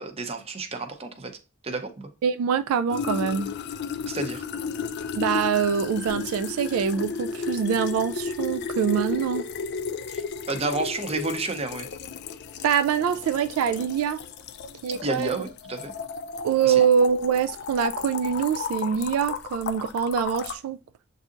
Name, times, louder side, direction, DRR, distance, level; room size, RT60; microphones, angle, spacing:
voice 1, 0.0-1.4 1.6-2.1 4.1-4.5 10.1-10.2 10.5-11.9 15.0-15.9 16.6-16.8, right 3 dB, 30° right, 0.6 m, -31 dB
voice 2, 2.2-3.5 5.2-9.4 12.6-14.2 14.8-15.4 16.4-20.8, right 7 dB, 85° right, 0.3 m, -24 dB
sound 1, 2.9-20.6, left 5 dB, 50° left, 0.3 m, -33 dB
7.3 x 2.7 x 2.5 m
head